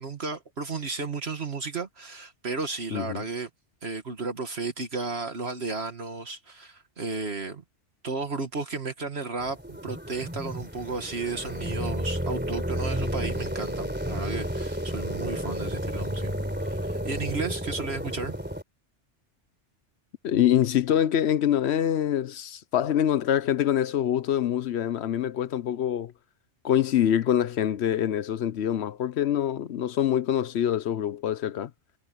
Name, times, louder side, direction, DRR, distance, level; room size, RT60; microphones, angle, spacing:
voice 1, 0.0-3.5 3.8-7.6 8.0-18.3, right 4 dB, 60° right, 1.8 m, -33 dB
voice 2, 2.9-3.2 20.2-26.1 26.6-31.7, left 10 dB, 65° left, 0.9 m, -25 dB
sound 1, 9.4-18.6, equal, 10° right, 3.6 m, -31 dB
omnidirectional pair, 1.2 m